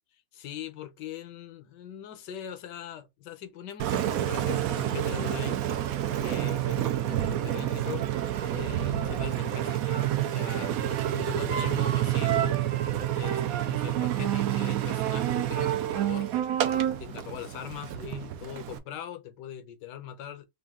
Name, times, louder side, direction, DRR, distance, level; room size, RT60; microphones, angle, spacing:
voice 1, 0.3-5.6 6.2-12.6 13.1-13.4 13.7-16.4 16.7-20.5, left 10 dB, 75° left, 1.3 m, -41 dB
Engine, 3.8-18.8, right 12 dB, 70° right, 0.8 m, -28 dB
3.5 x 2.5 x 3.6 m
omnidirectional pair, 2.0 m